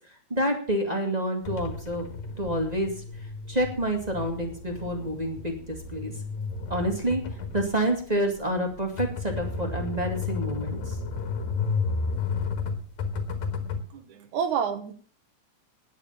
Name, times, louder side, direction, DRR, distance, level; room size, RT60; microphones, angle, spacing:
voice 1, 0.3-2.1 2.4-3.0 3.5-6.1 6.7-11.0, right 1 dB, 15° right, 3 dB, 1.6 m, -28 dB
sound 1, 1.4-13.8, left 4 dB, 70° left, 2.9 m, -32 dB
voice 2, 13.9-14.9, right 7 dB, 80° right, 9 dB, 2.8 m, -29 dB
9.9 x 9.5 x 7.0 m, 0.44 s
omnidirectional pair, 3.4 m